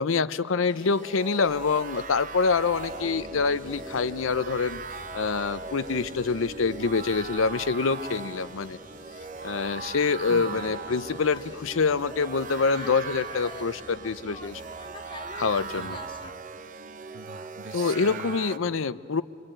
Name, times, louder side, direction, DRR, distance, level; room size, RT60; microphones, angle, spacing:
voice 1, 0.0-4.8 5.1-8.8 9.4-14.6 15.3-16.0 17.7-19.2, left 4 dB, 70° left, 15 dB, 0.6 m, -26 dB
sound 1, 0.6-18.6, right 4 dB, 40° right, 0.7 m, -39 dB
sound 2, 1.4-7.8, equal, 10° right, 1.9 m, -51 dB
sound 3, 2.5-16.3, left 2 dB, 25° left, 0.9 m, -47 dB
voice 2, 10.3-10.8 15.8-16.4 17.1-18.3, right 3 dB, 70° right, 11 dB, 1.0 m, -43 dB
29.0 x 22.5 x 8.9 m, 2.5 s
head